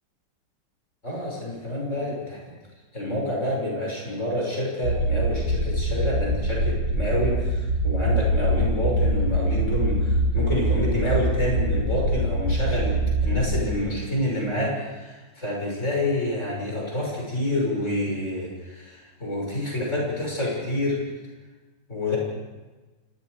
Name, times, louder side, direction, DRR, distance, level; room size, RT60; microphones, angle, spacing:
voice 1, 1.0-2.5 2.9-21.0 21.9-22.2, left 1 dB, 40° left, -2 dB, 6.5 m, -28 dB
sound 1, 4.8-13.7, right 1 dB, 85° right, 6.6 m, -24 dB
29.0 x 24.0 x 5.0 m, 1.3 s
omnidirectional pair, 1.9 m